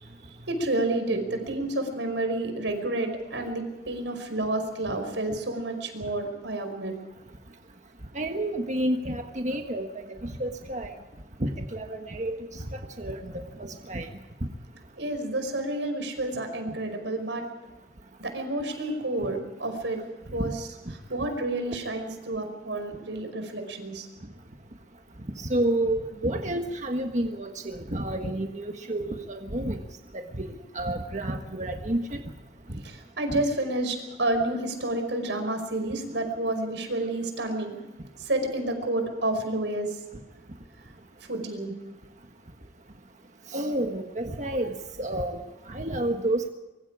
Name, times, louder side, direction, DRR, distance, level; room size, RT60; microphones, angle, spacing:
voice 1, 0.0-7.0 15.0-17.5 18.2-20.0 20.3-20.7 21.1-24.1 32.8-37.8 38.2-40.0 41.2-41.8, right 2 dB, 90° right, 6 dB, 5.4 m, -30 dB
voice 2, 8.1-10.9 11.4-12.6 13.0-13.3 13.6-14.1 20.4-20.5 25.4-29.8 30.1-30.5 30.7-32.2 33.3-33.4 43.5-45.4 45.7-46.5, right 1 dB, 40° right, 4 dB, 1.5 m, -30 dB
25.0 x 23.5 x 4.9 m, 1.1 s
head